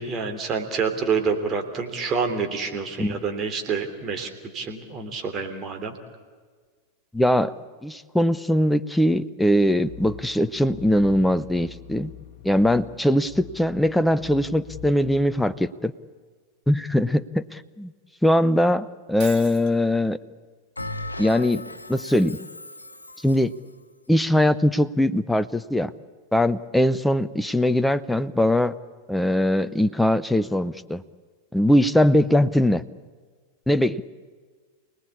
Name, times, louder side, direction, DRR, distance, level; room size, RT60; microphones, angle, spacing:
voice 1, 0.0-6.0, right 5 dB, 30° right, 5 dB, 3.3 m, -27 dB
voice 2, 7.1-7.5 7.8-12.1 12.4-15.9 16.7-17.9 18.2-20.2 21.2-22.4 23.2-23.5 24.1-25.9 26.3-28.7 29.1-31.0 31.5-32.8 33.7-34.0, left 1 dB, 5° left, 14 dB, 0.8 m, -21 dB
sound 1, 9.8-15.4, left 10 dB, 50° left, 1.1 m, -44 dB
Shatter, 19.2-19.7, right 8 dB, 45° right, 3.3 m, -39 dB
Bell, 20.8-23.5, left 1 dB, 80° left, 1.3 m, -37 dB
29.0 x 19.5 x 8.5 m, 1.6 s
figure-of-eight pair, 90°, 0 cm